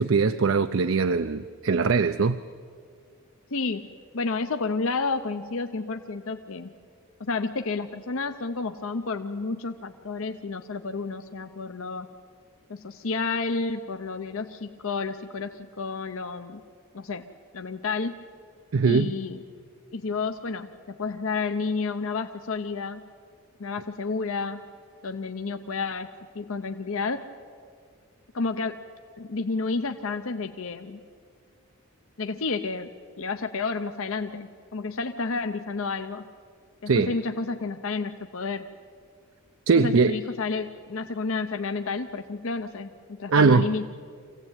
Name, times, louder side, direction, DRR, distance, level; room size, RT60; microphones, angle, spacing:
voice 1, 0.0-2.4 18.7-19.1 36.9-37.1 39.7-40.2 43.3-43.7, right 4 dB, 60° right, 10 dB, 0.5 m, -21 dB
voice 2, 3.5-3.9 4.1-6.7 7.2-12.1 12.7-16.6 16.9-17.3 17.5-18.2 18.8-19.4 19.9-23.0 23.6-24.6 25.0-26.1 26.3-27.3 28.3-28.8 29.2-31.0 32.2-32.9 33.2-36.2 36.8-38.6 39.7-43.9, left 4 dB, 70° left, 7 dB, 0.7 m, -30 dB
24.5 x 16.5 x 8.9 m, 2.1 s
head